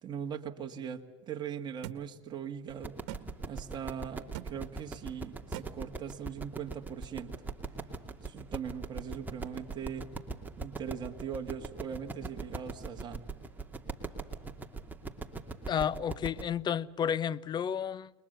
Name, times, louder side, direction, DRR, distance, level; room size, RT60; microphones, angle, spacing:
voice 1, 0.0-3.0 3.5-7.4 8.2-10.1 10.6-13.2, right 8 dB, 30° right, 2.0 m, -40 dB
sound 1, 1.8-2.0 3.1-3.2 4.3-4.5 5.5-5.7, right 14 dB, 65° right, 1.6 m, -40 dB
sound 2, 2.7-16.4, right 3 dB, 10° right, 2.6 m, -40 dB
voice 2, 15.7-18.1, left 8 dB, 30° left, 0.8 m, -31 dB
30.0 x 22.0 x 6.9 m
supercardioid pair, 110°, 15 cm